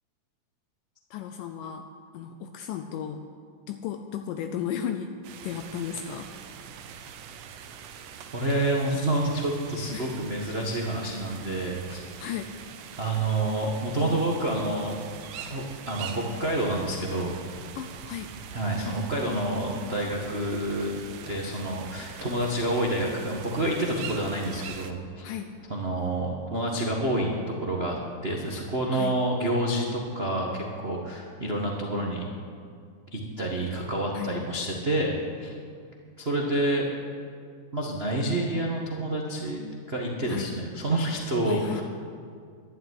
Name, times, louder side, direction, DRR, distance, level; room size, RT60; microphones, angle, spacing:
voice 1, 1.1-3.3 3.7-5.1 5.4-6.3 9.9-10.2 12.2-12.5 17.8-18.3 25.2-25.5 28.9-29.2 34.1-34.4 40.3-40.5 41.5-41.8, left 9 dB, 80° left, 7 dB, 2.3 m, -35 dB
sound 1, 5.2-24.9, right 8 dB, 75° right, 2.3 m, -43 dB
voice 2, 8.3-12.0 13.0-14.9 15.5-17.3 18.5-21.0 21.2-25.3 25.7-32.2 33.1-35.6 36.2-36.9 37.7-39.6 39.9-41.8, right 1 dB, 90° right, -1 dB, 0.5 m, -28 dB
12.5 x 11.5 x 9.7 m, 2.2 s
omnidirectional pair, 4.0 m